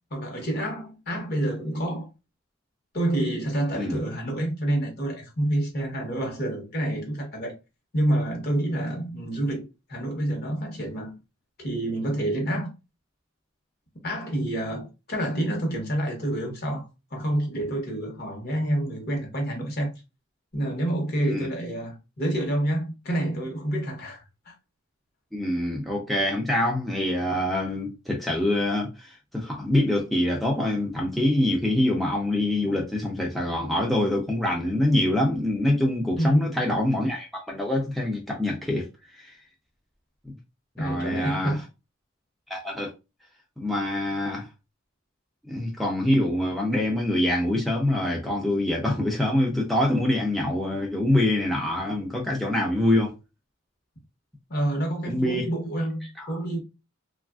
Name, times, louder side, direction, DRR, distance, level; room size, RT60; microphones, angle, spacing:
voice 1, 0.1-2.1 2.9-7.5 7.9-11.1 11.6-12.7 14.0-16.9 17.1-19.9 20.5-24.5 36.2-36.6 40.8-41.6 54.5-56.6, right 1 dB, 50° left, 1.0 m, -28 dB
voice 2, 25.3-38.9 39.1-39.3 40.8-41.6 42.5-42.9 43.6-44.5 45.4-53.1 55.0-55.4 56.0-56.4, left 1 dB, ahead, 0.4 m, -25 dB
3.0 x 2.4 x 2.3 m
head